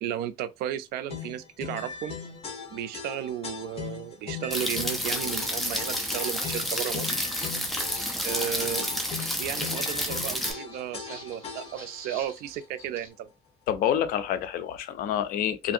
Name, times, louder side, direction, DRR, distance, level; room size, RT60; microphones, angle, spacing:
voice 1, 0.0-2.2 2.7-7.2 8.2-8.9 9.4-13.3, right 11 dB, 85° right, 0.4 m, -34 dB
sound 1, 1.1-12.0, left 6 dB, 40° left, 0.9 m, -39 dB
sound 2, 4.5-10.5, equal, ahead, 0.5 m, -30 dB
Walk footsteps, 4.8-13.1, equal, 15° right, 1.7 m, -47 dB
voice 2, 13.7-15.7, left 10 dB, 70° left, 0.5 m, -27 dB
2.6 x 2.5 x 2.5 m
cardioid pair, 145°, 16 cm